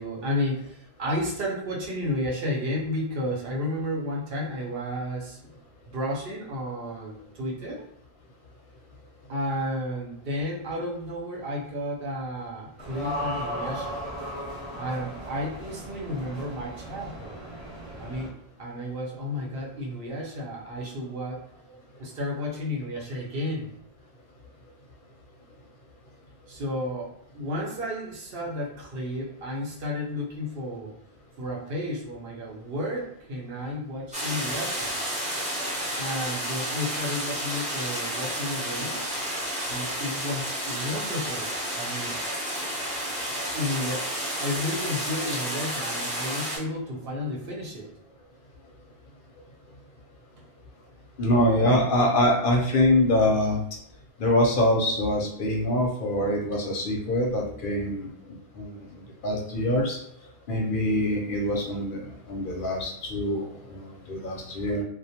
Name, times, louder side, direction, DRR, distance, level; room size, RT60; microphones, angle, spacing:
voice 1, 0.0-5.4 5.9-7.8 9.3-14.0 14.8-17.4 18.0-18.3 18.6-23.7 26.5-30.9 31.4-34.9 36.0-39.0 39.7-42.1 43.5-47.9, left 1 dB, 65° right, -3 dB, 0.8 m, -32 dB
sound 1, 12.8-18.3, equal, 35° right, 0.8 m, -36 dB
sound 2, 34.1-46.6, equal, 10° right, 0.4 m, -31 dB
voice 2, 51.2-53.6 54.2-58.1 58.6-58.8 59.2-60.0 60.5-64.8, left 1 dB, 60° left, 0 dB, 0.6 m, -24 dB
2.2 x 2.1 x 2.7 m, 0.71 s
omnidirectional pair, 1.1 m